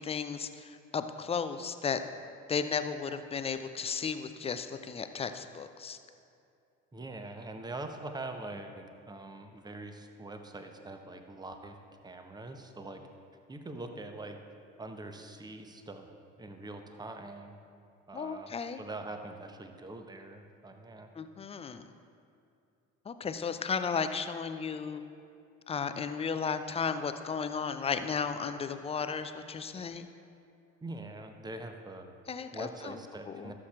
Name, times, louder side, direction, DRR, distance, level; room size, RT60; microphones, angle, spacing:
voice 1, 0.0-2.0 2.5-6.0 18.1-18.8 21.2-21.9 23.1-25.0 25.7-30.1 32.3-33.0 33.3-33.5, left 6 dB, 15° left, 10 dB, 0.4 m, -34 dB
voice 2, 6.9-11.8 12.0-13.0 13.5-14.4 14.8-16.1 16.4-17.6 18.1-21.1 30.8-32.1 32.5-33.5, right 2 dB, 10° right, 6 dB, 0.8 m, -43 dB
16.5 x 7.4 x 2.5 m, 2.5 s
figure-of-eight pair, 60°, 40 cm